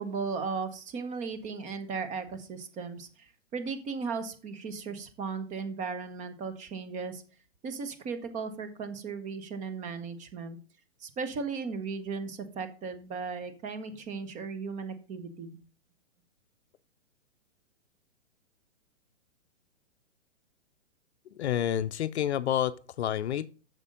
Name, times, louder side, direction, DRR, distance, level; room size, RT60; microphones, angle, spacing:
voice 1, 0.0-7.2 7.6-10.6 11.0-15.6, right 5 dB, 20° right, 0.9 m, -36 dB
voice 2, 21.3-23.5, left 10 dB, 60° left, 0.6 m, -29 dB
8.2 x 6.6 x 3.8 m
hypercardioid pair, 125°, 37 cm